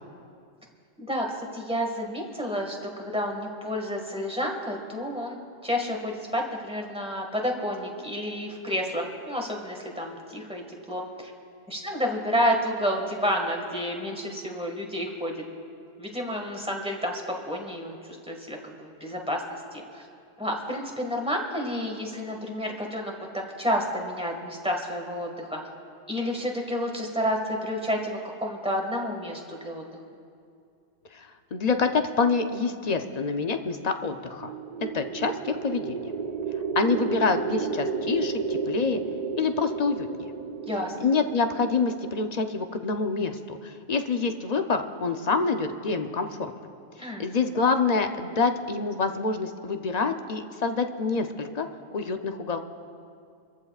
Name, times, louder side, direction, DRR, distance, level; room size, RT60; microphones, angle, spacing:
voice 1, 1.0-11.3 11.7-15.4 16.0-20.0 20.4-25.6 26.1-29.8 40.7-41.1 47.0-47.3, equal, 5° right, 0 dB, 1.7 m, -30 dB
voice 2, 31.1-34.5 34.9-36.1 36.8-39.0 39.4-40.3 41.0-46.5 47.0-52.6, left 4 dB, 40° left, 6 dB, 0.7 m, -27 dB
sound 1, 34.3-42.4, right 5 dB, 55° right, 0.6 m, -32 dB
27.0 x 14.5 x 2.4 m, 2.4 s
omnidirectional pair, 1.2 m